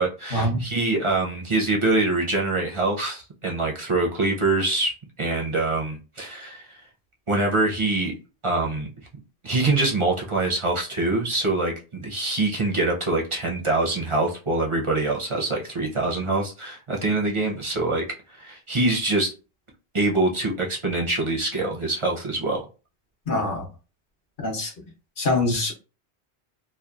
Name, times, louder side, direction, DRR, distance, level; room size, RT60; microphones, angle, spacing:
voice 1, 0.0-6.8 7.3-8.1 8.4-8.9 9.4-18.0 18.4-19.3 19.9-22.6, right 2 dB, 40° right, 0.4 m, -24 dB
voice 2, 23.3-23.6 24.4-24.7 25.2-25.7, left 2 dB, 55° left, 0.9 m, -24 dB
2.8 x 2.1 x 2.3 m
omnidirectional pair, 1.1 m